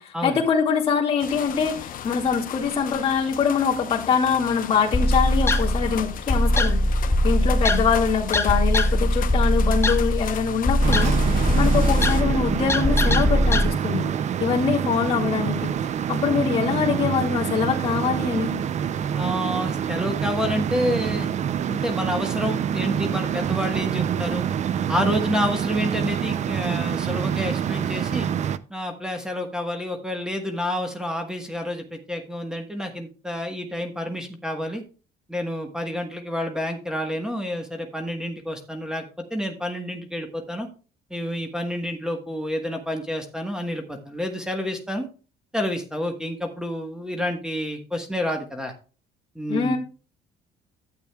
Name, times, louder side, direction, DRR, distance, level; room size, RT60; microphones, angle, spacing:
voice 1, 0.0-6.8 7.2-14.1 14.4-15.7 16.1-18.5 49.5-49.8, left 6 dB, 35° left, -5 dB, 2.3 m, -24 dB
sound 1, 1.2-12.2, left 10 dB, 55° left, 0.9 m, -36 dB
sound 2, 4.9-13.7, equal, 15° left, 0.8 m, -21 dB
sound 3, 10.8-28.6, right 8 dB, 45° right, 0.4 m, -26 dB
voice 2, 19.1-21.3 21.7-24.4 24.9-28.3 28.7-34.8 35.3-39.0 39.3-40.7 41.1-45.1 45.5-48.7 49.3-49.8, equal, 5° right, 5 dB, 1.2 m, -29 dB
12.5 x 8.4 x 2.3 m, 0.36 s
cardioid pair, 110°, 17 cm